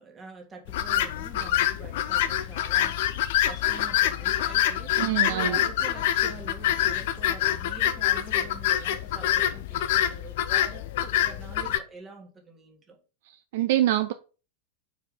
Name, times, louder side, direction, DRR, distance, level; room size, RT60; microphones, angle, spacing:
voice 1, 0.0-3.2 3.5-13.0, right 4 dB, 20° right, 1.7 m, -46 dB
sound 1, 0.7-11.8, left 12 dB, 50° left, 0.5 m, -26 dB
voice 2, 5.0-5.6 13.5-14.1, right 14 dB, 55° right, 0.4 m, -24 dB
4.8 x 4.5 x 5.0 m
figure-of-eight pair, 90°, 0 cm